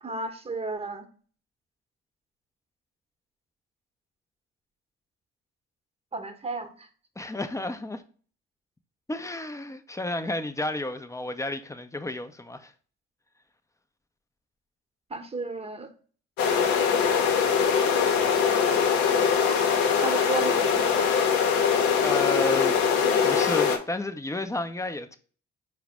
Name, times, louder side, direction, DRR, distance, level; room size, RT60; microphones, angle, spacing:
voice 1, 0.0-1.1 6.1-6.9 15.1-15.9 20.0-21.2, right 3 dB, 15° right, 0.9 m, -33 dB
voice 2, 7.2-8.0 9.1-12.7 22.0-22.8 23.2-25.2, left 2 dB, 10° left, 0.5 m, -32 dB
sound 1, 16.4-23.8, left 6 dB, 70° left, 0.7 m, -22 dB
4.8 x 2.1 x 4.7 m
hypercardioid pair, 50°, 35 cm